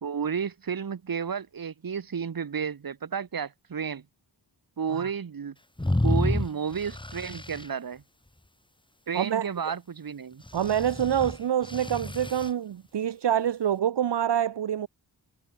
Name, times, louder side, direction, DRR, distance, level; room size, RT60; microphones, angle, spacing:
voice 1, 0.0-4.0 4.8-5.6 6.0-8.0 9.1-10.4, right 6 dB, 50° right, 1.8 m, -32 dB
sound 1, 5.8-7.7 10.5-12.5, left 1 dB, 10° left, 2.6 m, -29 dB
voice 2, 9.1-9.5 10.5-14.9, right 9 dB, 70° right, 1.0 m, -26 dB
wide cardioid pair, 135°, 43 cm